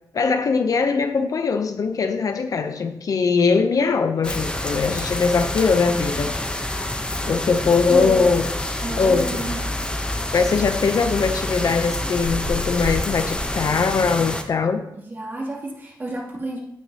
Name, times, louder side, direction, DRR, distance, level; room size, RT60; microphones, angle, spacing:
voice 1, 0.1-6.4 7.3-8.4 9.0-9.4 10.3-14.8, left 5 dB, 60° left, 8 dB, 0.6 m, -21 dB
sound 1, 4.2-14.4, left 1 dB, 15° left, 0.8 m, -27 dB
voice 2, 7.9-8.2 8.8-9.6 14.9-16.6, right 1 dB, 30° right, -4 dB, 2.6 m, -30 dB
15.0 x 6.2 x 2.8 m, 0.81 s
wide cardioid pair, 140°, 7 cm